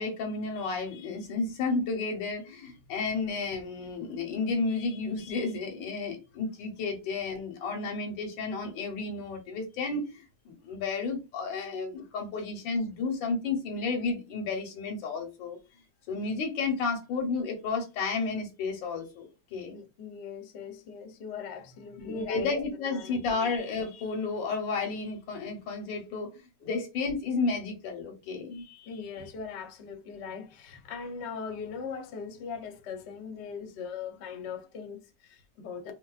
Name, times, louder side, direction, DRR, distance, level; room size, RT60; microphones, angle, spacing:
voice 1, 0.0-15.6 16.1-19.8 22.0-26.3 26.6-28.9, left 4 dB, 90° left, 1.7 m, -32 dB
voice 2, 4.9-5.3 19.7-22.5 22.9-23.2 26.6-26.7 28.9-35.9, left 5 dB, 70° left, 0.6 m, -40 dB
4.6 x 2.2 x 2.3 m
omnidirectional pair, 2.0 m